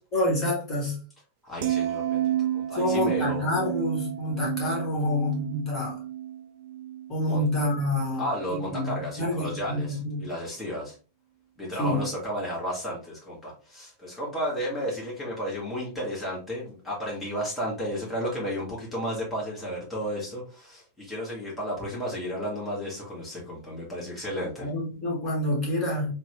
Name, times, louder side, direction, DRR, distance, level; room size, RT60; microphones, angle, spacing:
voice 1, 0.1-0.9 2.7-6.0 7.1-10.2 11.8-12.0 24.6-26.1, left 1 dB, 25° left, 1.2 m, -27 dB
voice 2, 1.4-3.4 7.3-7.5 8.2-10.9 11.6-24.7, equal, 5° left, 1.2 m, -33 dB
sound 1, 1.6-7.9 8.2-8.6, right 12 dB, 55° right, 0.3 m, -31 dB
2.9 x 2.1 x 2.9 m
figure-of-eight pair, 90°, 0 cm